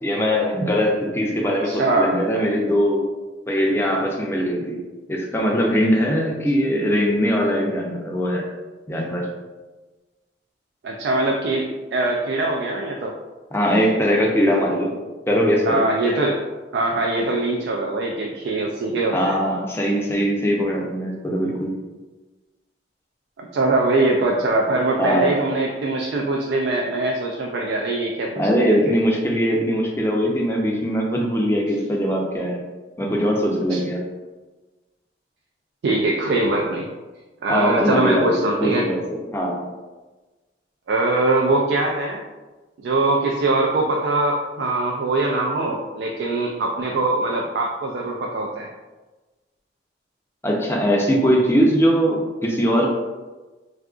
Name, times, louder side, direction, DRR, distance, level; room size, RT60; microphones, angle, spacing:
voice 1, 0.0-3.1 3.5-4.8 5.1-8.4 8.9-9.3 13.5-14.9 15.3-15.8 19.1-21.8 25.0-25.4 28.4-32.6 33.0-34.0 37.5-39.7 50.4-52.9, equal, 15° left, -1 dB, 0.4 m, -21 dB
voice 2, 1.6-2.2 10.8-13.1 15.7-16.4 16.7-19.4 23.4-28.8 31.7-31.8 33.7-33.8 35.8-36.9 37.4-38.9 40.9-42.2 42.8-48.7, right 2 dB, 80° right, 0 dB, 0.3 m, -22 dB
3.6 x 2.4 x 2.3 m, 1.2 s
head